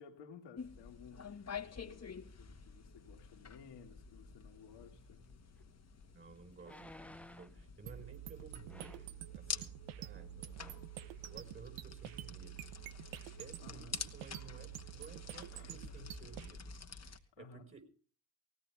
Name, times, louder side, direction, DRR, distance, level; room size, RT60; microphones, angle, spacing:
voice 1, 0.0-5.2 13.6-14.0 15.5-16.1 17.3-17.7, left 6 dB, 70° left, 2.2 m, -57 dB
sound 1, 0.6-17.2, left 6 dB, 35° left, 1.6 m, -49 dB
sound 2, 5.6-5.7 6.6-7.6 8.7-9.2 10.1-10.3 10.6-10.9 11.4-11.5, left 1 dB, 5° left, 0.8 m, -55 dB
voice 2, 6.1-12.7 13.4-17.8, right 4 dB, 25° right, 5.4 m, -56 dB
sound 3, 7.9-16.5, right 13 dB, 80° right, 0.9 m, -48 dB
18.5 x 16.5 x 3.4 m
hypercardioid pair, 45°, 44 cm